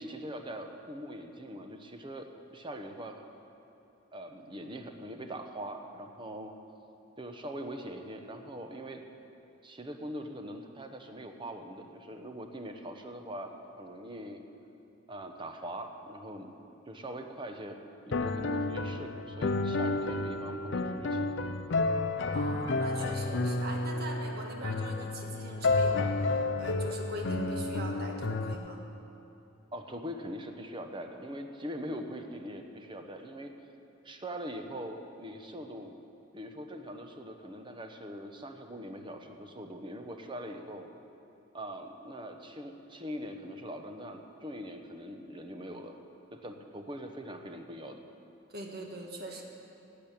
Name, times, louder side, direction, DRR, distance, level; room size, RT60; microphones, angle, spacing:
voice 1, 0.0-3.2 4.1-6.5 7.2-9.0 9.6-14.4 15.1-16.5 16.9-17.8 18.1-21.4 29.7-33.5 34.0-35.9 36.3-40.9 41.5-46.0 46.3-48.0, equal, 25° right, 5 dB, 0.9 m, -42 dB
sound 1, 18.1-28.5, left 2 dB, 65° left, 0.6 m, -31 dB
voice 2, 22.3-28.8 48.5-49.4, right 1 dB, 55° right, 1 dB, 1.7 m, -42 dB
12.5 x 8.6 x 8.7 m, 2.8 s
head